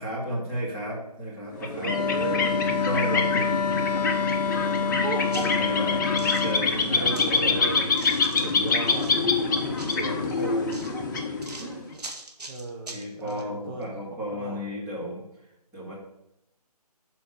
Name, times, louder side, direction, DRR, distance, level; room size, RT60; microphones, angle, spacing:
voice 1, 0.0-1.9 2.8-3.4 3.8-4.1 5.4-6.0 6.4-7.8 8.3-8.7 9.5-9.6 12.9-15.2 15.7-15.9, equal, 10° right, -8 dB, 2.4 m, -33 dB
sound 1, 1.5-11.9, left 4 dB, 30° left, 0.8 m, -26 dB
voice 2, 1.5-2.7 4.6-5.4 5.8-6.1 6.9-7.9 8.4-9.1 10.0-11.3 11.6-12.0 12.5-13.9 14.3-14.6, right 3 dB, 35° right, -2 dB, 1.0 m, -36 dB
Wind instrument woodwind instrument, 1.8-6.7, left 5 dB, 75° left, 0.4 m, -27 dB
sound 2, 4.7-4.8 5.2-7.5 7.7-9.2 9.7-13.4 13.8-13.9, right 3 dB, 75° right, 1.5 m, -43 dB
7.2 x 4.4 x 6.6 m, 0.84 s
figure-of-eight pair, 145°, 20 cm